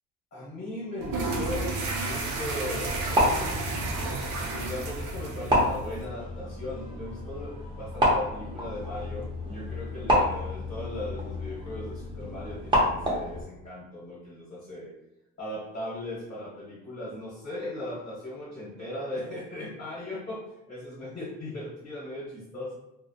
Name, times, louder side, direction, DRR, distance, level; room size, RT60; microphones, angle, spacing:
voice 1, 0.3-3.9 4.4-14.9 15.4-20.4 20.7-22.7, left 1 dB, 30° left, -7 dB, 0.8 m, -38 dB
sound 1, 1.0-6.0, right 2 dB, 65° right, 0.5 m, -32 dB
sound 2, 2.9-13.4, left 1 dB, 15° right, 0.4 m, -29 dB
2.4 x 2.0 x 2.6 m, 0.91 s
cardioid pair, 155°, 35 cm